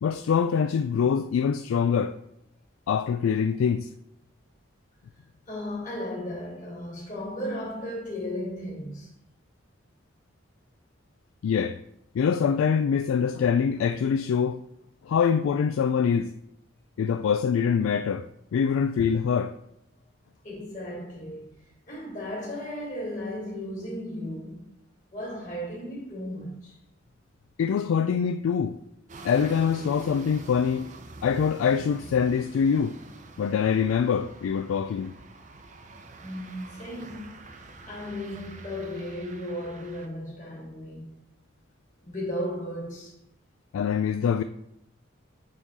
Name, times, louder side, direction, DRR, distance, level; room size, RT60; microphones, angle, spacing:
voice 1, 0.0-2.1 2.9-3.9 11.4-11.8 12.1-14.6 15.1-16.3 17.0-19.5 27.6-28.8 29.2-30.9 31.2-33.0 33.4-35.1 43.7-44.4, left 7 dB, 85° left, 0.3 m, -24 dB
voice 2, 5.5-9.1 20.4-21.6 21.9-24.6 25.1-26.7 36.2-37.4 37.8-41.1 42.0-43.1, left 1 dB, 40° left, 2.8 m, -35 dB
sound 1, 29.1-40.1, right 2 dB, 35° right, 0.6 m, -46 dB
9.2 x 3.7 x 4.1 m
head